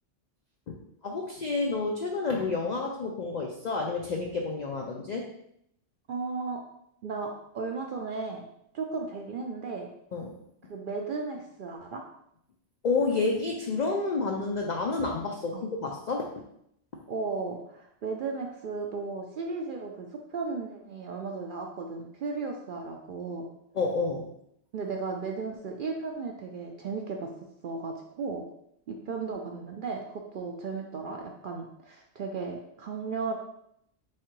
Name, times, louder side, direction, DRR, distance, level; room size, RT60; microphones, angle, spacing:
voice 1, 0.7-5.3 10.1-10.4 12.8-16.3 23.7-24.3, left 3 dB, 65° left, 1 dB, 0.4 m, -30 dB
voice 2, 6.1-6.6 7.0-7.3 7.5-8.5 8.7-9.9 10.7-12.0 15.5-15.6 17.1-23.5 24.7-27.3 27.6-28.4 28.9-33.4, right 4 dB, 60° right, 2 dB, 0.5 m, -35 dB
3.6 x 3.2 x 4.4 m, 0.75 s
omnidirectional pair, 1.3 m